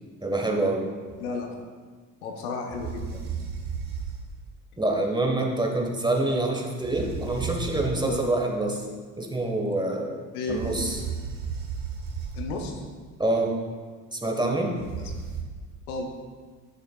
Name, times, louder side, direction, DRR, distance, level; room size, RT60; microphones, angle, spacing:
voice 1, 0.2-0.9 4.8-8.8 9.2-10.2 10.5-11.0 13.2-13.5 14.1-14.7, right 2 dB, 10° right, 1 dB, 1.4 m, -26 dB
sound 1, 1.1-1.3 2.7-4.4 6.8-8.2 10.5-12.7 14.8-15.4, right 6 dB, 50° right, 1.7 m, -34 dB
voice 2, 1.2-1.6 2.2-3.3 8.1-8.2 10.3-10.6 12.3-12.7 14.9-15.1 15.9-16.1, left 3 dB, 75° left, 2 dB, 1.0 m, -33 dB
11.0 x 6.6 x 2.4 m, 1.5 s
figure-of-eight pair, 55°, 45 cm